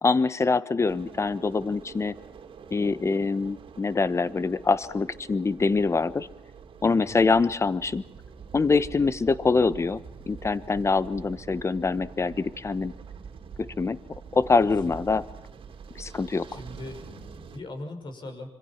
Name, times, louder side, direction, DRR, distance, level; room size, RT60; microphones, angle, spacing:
voice 1, 0.0-2.1 2.7-6.3 6.8-8.0 8.5-10.0 10.3-12.9 13.8-14.0 14.3-15.2 15.9-16.5, left 4 dB, 30° left, 15 dB, 1.1 m, -24 dB
sound 1, 0.8-17.6, right 6 dB, 65° right, 2.8 m, -45 dB
voice 2, 6.9-7.2 14.6-15.0 16.5-18.5, left 2 dB, 50° left, 6 dB, 6.0 m, -40 dB
26.0 x 25.5 x 5.9 m, 0.73 s
cardioid pair, 105°, 10 cm